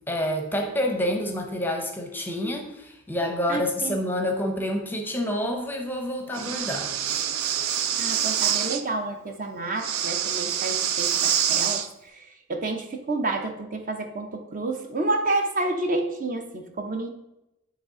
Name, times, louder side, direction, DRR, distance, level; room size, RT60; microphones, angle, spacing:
voice 1, 0.1-6.9, left 1 dB, 10° left, 3 dB, 0.7 m, -28 dB
voice 2, 3.5-4.0 8.0-11.8 12.1-17.1, right 2 dB, 40° right, 4 dB, 0.6 m, -29 dB
Breathing, 6.3-8.8 9.8-11.9, right 9 dB, 85° right, 0.5 m, -26 dB
8.6 x 3.3 x 3.8 m, 0.88 s
head